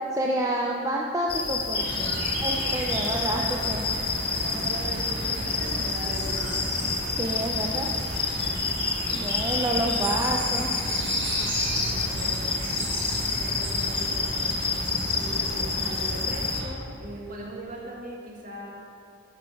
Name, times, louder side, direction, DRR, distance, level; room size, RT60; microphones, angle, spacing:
voice 1, 0.1-2.2 2.4-3.4 3.7-3.8 7.0-7.9 9.1-10.7, right 1 dB, 15° right, -1 dB, 0.5 m, -29 dB
sound 1, 1.3-16.6, left 4 dB, 30° left, 0.8 m, -29 dB
sound 2, 1.7-16.7, equal, 60° right, 2.8 m, -33 dB
voice 2, 2.5-3.8 4.4-6.6 11.8-12.7 13.3-14.4 15.1-18.7, right 1 dB, 40° right, -2 dB, 1.8 m, -39 dB
9.9 x 7.0 x 5.9 m, 2.6 s
head